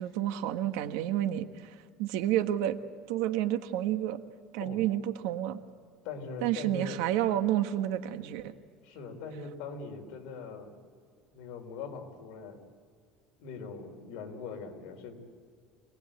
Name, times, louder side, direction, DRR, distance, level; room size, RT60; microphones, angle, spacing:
voice 1, 0.0-2.8 3.1-4.2 4.5-5.6 6.4-8.5, right 12 dB, 80° right, 9 dB, 1.3 m, -30 dB
voice 2, 6.0-7.0 8.8-10.7 11.3-12.6 13.4-15.1, left 5 dB, 65° left, 3 dB, 4.0 m, -41 dB
26.0 x 19.0 x 8.9 m, 2.1 s
cardioid pair, 170°, 0 cm